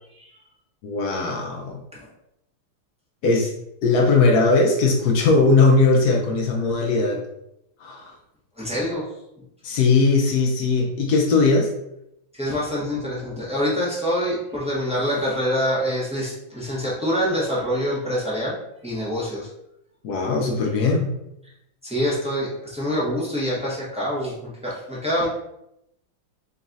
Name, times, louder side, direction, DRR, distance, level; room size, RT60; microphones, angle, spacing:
voice 1, 0.8-1.8 3.2-3.5 3.8-7.2 7.8-8.1 9.6-11.7 20.0-21.1, left 3 dB, 80° left, 1 dB, 0.8 m, -19 dB
voice 2, 8.6-9.0 12.3-18.5 18.8-19.5 21.8-25.3, equal, 10° right, -8 dB, 0.4 m, -25 dB
3.9 x 2.4 x 3.9 m, 0.82 s
omnidirectional pair, 2.3 m